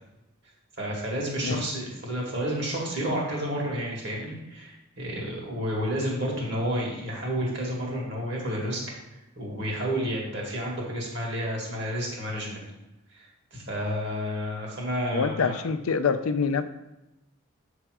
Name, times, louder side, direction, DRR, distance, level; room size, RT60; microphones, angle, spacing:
voice 1, 0.8-8.8 9.4-12.6 13.1-15.6, equal, 55° right, -2 dB, 1.9 m, -30 dB
voice 2, 15.1-16.6, left 5 dB, 80° left, 10 dB, 0.5 m, -25 dB
6.9 x 3.4 x 4.8 m, 0.97 s
head